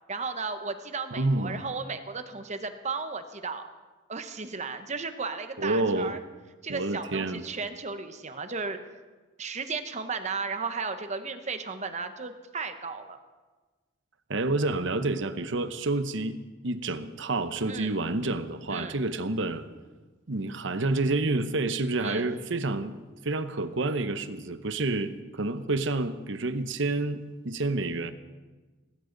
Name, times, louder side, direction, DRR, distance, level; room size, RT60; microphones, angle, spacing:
voice 1, 0.1-3.6 4.1-6.2 6.6-8.8 9.4-13.2 17.7-17.9 18.7-19.0 22.0-22.3, right 4 dB, 35° right, 9 dB, 1.0 m, -34 dB
voice 2, 1.1-1.6 5.6-6.2 6.7-7.4 14.3-16.4 16.6-19.6 20.3-22.9 23.2-28.1, right 2 dB, 65° right, 11 dB, 0.9 m, -29 dB
18.5 x 17.0 x 4.0 m, 1.3 s
head